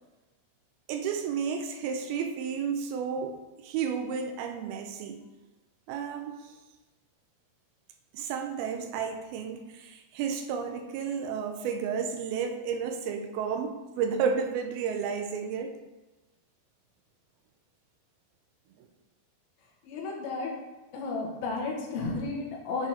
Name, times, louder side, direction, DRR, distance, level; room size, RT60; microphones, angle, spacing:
voice 1, 0.9-5.2 5.9-6.4 8.1-15.8, right 6 dB, 85° right, 5 dB, 2.6 m, -32 dB
voice 2, 19.8-20.5 20.9-22.9, left 3 dB, 75° left, -1 dB, 3.1 m, -33 dB
9.1 x 4.1 x 4.3 m, 1.1 s
omnidirectional pair, 4.4 m